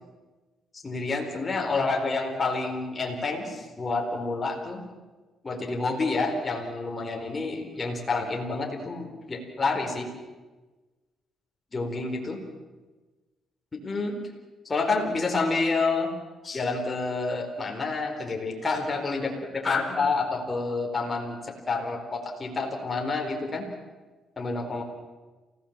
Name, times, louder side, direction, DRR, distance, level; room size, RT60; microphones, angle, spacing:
voice 1, 0.8-4.8 5.4-10.1 11.7-12.4 13.7-14.2 14.6-16.1 16.4-23.7 24.4-24.8, left 3 dB, 30° left, 2 dB, 4.5 m, -28 dB
28.5 x 17.0 x 7.5 m, 1.2 s
cardioid pair, 90°, 0 cm